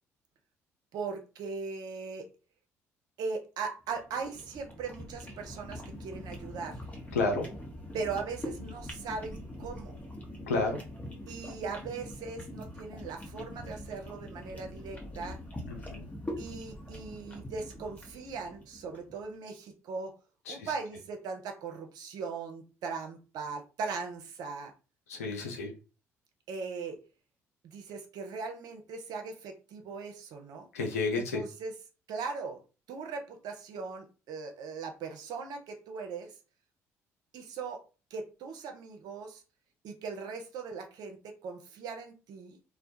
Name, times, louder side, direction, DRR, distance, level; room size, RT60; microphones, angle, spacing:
voice 1, 0.9-2.3 3.2-6.8 7.9-10.0 11.3-15.4 16.4-20.1 20.5-24.7 26.5-27.0 27.6-30.7 31.2-31.7 32.1-32.6 32.9-36.3 37.3-37.8 38.1-39.4 39.8-42.6, right 4 dB, 60° right, 0.6 m, -39 dB
sound 1, 4.0-19.1, left 1 dB, 20° left, 0.9 m, -43 dB
voice 2, 7.1-7.5 10.5-10.8 15.7-16.1 20.5-20.6 25.1-25.7 30.7-31.4, left 3 dB, 85° left, 0.5 m, -31 dB
2.2 x 2.1 x 2.7 m
hypercardioid pair, 50°, 8 cm